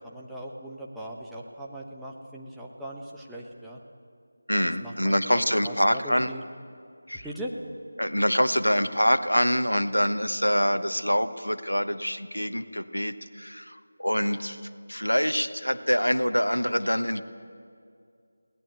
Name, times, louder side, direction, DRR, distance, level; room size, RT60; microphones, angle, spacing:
voice 1, 0.0-3.8 4.8-6.4 7.2-7.5, right 1 dB, ahead, -5 dB, 1.1 m, -39 dB
voice 2, 4.5-6.3 7.1-7.3 8.0-17.2, equal, 85° left, 11 dB, 1.1 m, -25 dB
23.0 x 18.0 x 8.0 m, 2.3 s
figure-of-eight pair, 165°, 0 cm